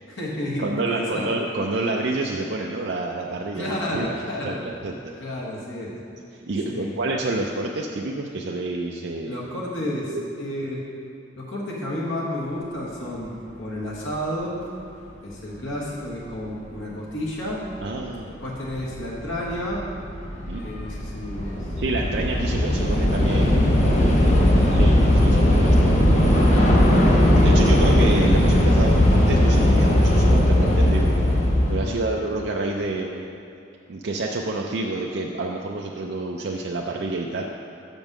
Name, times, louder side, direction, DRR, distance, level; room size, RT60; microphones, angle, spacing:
voice 1, 0.1-1.3 3.5-4.6 5.2-6.0 6.6-6.9 9.3-10.8 11.3-14.6 15.2-17.6 18.3-19.9 20.6-21.7 24.2-24.9 31.8-32.1, left 1 dB, 85° left, -5 dB, 1.4 m, -31 dB
voice 2, 0.6-5.1 6.5-9.4 10.0-10.3 17.8-18.4 20.5-20.6 21.8-23.9 24.8-25.9 27.0-31.1 31.7-33.3 33.9-37.5, right 2 dB, 65° right, 0 dB, 0.4 m, -28 dB
Train / Subway metro underground, 17.8-17.9 18.7-18.9 19.2-31.8, left 1 dB, 35° left, 0.8 m, -18 dB
6.5 x 5.3 x 6.0 m, 2.7 s
head